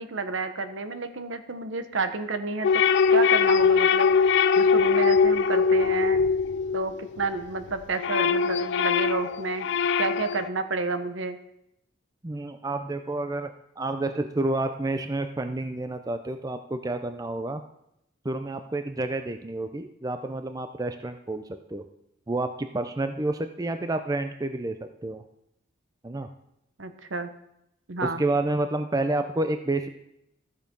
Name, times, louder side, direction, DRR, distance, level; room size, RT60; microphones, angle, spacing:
voice 1, 0.0-2.8 3.1-4.1 4.6-6.2 6.7-9.7 10.0-11.4 26.8-27.3 27.9-28.2, right 3 dB, 65° right, 9 dB, 1.0 m, -30 dB
sound 1, 2.6-7.3 7.7-10.5, left 5 dB, 60° left, 0.4 m, -22 dB
voice 2, 12.2-17.6 18.2-21.4 21.7-21.8 22.3-25.2 26.0-26.3 28.0-29.9, right 2 dB, 20° right, 8 dB, 0.5 m, -29 dB
13.5 x 6.7 x 5.3 m, 0.80 s
head